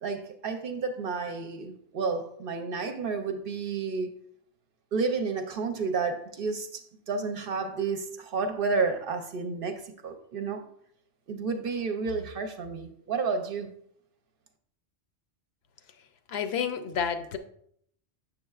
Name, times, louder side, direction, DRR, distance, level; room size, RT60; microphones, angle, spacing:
voice 1, 0.0-4.1 4.9-10.6 11.3-13.7, right 4 dB, 60° right, 0.8 m, -31 dB
voice 2, 16.3-17.4, left 7 dB, 75° left, 0.8 m, -30 dB
7.2 x 6.4 x 2.4 m
omnidirectional pair, 1.1 m